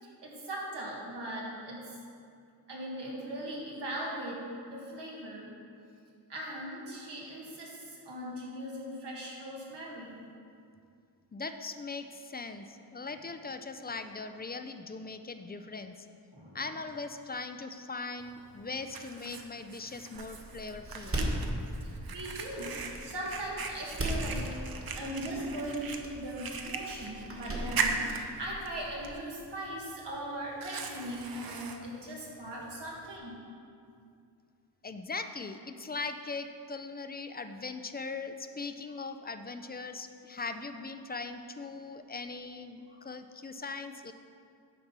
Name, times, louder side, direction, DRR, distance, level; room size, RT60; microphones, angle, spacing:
voice 1, 0.0-2.0 2.7-4.4 4.7-5.5 6.3-10.1 13.0-13.2 16.3-16.7 21.7-33.4 38.9-39.0 42.9-43.0, right 1 dB, 85° right, -4 dB, 2.1 m, -39 dB
voice 2, 11.3-16.1 16.5-21.2 34.8-44.1, left 3 dB, 25° left, 8 dB, 0.4 m, -40 dB
Fire, 18.2-33.2, right 5 dB, 60° right, 0.7 m, -40 dB
Door, 20.1-29.1, right 1 dB, 35° right, 1.4 m, -39 dB
9.8 x 4.3 x 6.0 m, 2.4 s
wide cardioid pair, 105°, 40 cm